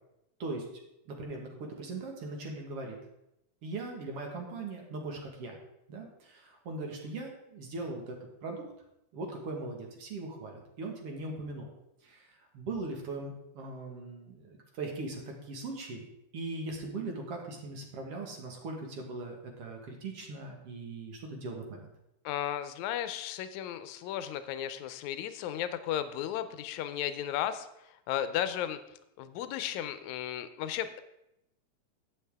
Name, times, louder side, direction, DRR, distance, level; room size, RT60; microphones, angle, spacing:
voice 1, 1.1-3.0 3.6-5.6 5.9-8.2 8.4-8.6 9.1-11.7 12.0-16.0 16.3-21.9, right 2 dB, 55° right, 1 dB, 2.3 m, -40 dB
voice 2, 22.2-28.8 29.2-31.0, left 10 dB, 80° left, 11 dB, 2.0 m, -35 dB
12.0 x 8.3 x 3.5 m, 0.86 s
omnidirectional pair, 3.4 m